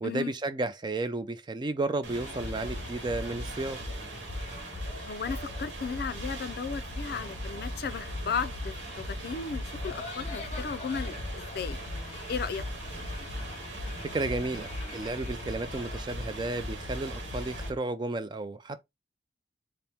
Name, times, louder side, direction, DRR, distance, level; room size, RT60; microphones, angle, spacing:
voice 1, 0.0-3.8 14.1-18.8, right 2 dB, 25° right, 0.3 m, -33 dB
sound 1, 2.0-17.7, right 3 dB, 85° right, 1.0 m, -43 dB
sound 2, 2.1-17.8, left 2 dB, 35° left, 1.0 m, -39 dB
voice 2, 5.1-11.8 12.3-12.6, left 5 dB, 55° left, 0.4 m, -35 dB
4.2 x 2.0 x 3.4 m
head